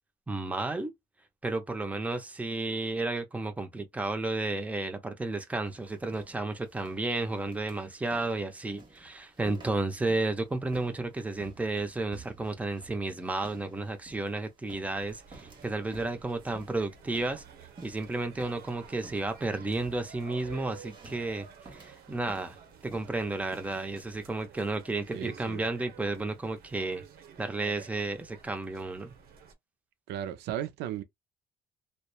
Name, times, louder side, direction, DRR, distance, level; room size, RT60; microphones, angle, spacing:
voice 1, 0.3-0.9 1.4-17.4 17.8-21.5 21.7-22.6 22.8-27.0 27.4-29.1, right 2 dB, 10° right, 0.6 m, -32 dB
sound 1, 5.6-23.8, right 2 dB, 30° right, 1.2 m, -53 dB
sound 2, 14.9-29.5, right 7 dB, 60° right, 1.0 m, -52 dB
voice 2, 25.1-25.6 30.1-31.0, right 11 dB, 80° right, 0.5 m, -35 dB
2.8 x 2.1 x 2.3 m
cardioid pair, 110°, 17 cm